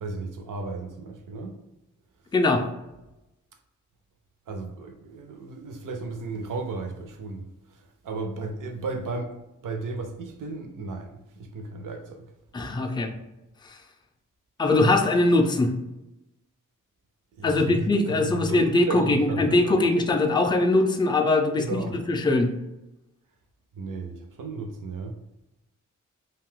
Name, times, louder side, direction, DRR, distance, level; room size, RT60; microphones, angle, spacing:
voice 1, 0.0-1.6 4.5-7.5 8.0-11.1 11.4-12.2 17.4-19.8 21.6-22.0 23.8-25.2, right 3 dB, 75° right, 0.5 m, -34 dB
voice 2, 2.3-2.6 12.5-13.1 14.6-15.7 17.4-22.5, left 2 dB, 15° left, 0.4 m, -22 dB
2.6 x 2.3 x 3.6 m
cardioid pair, 55°, 32 cm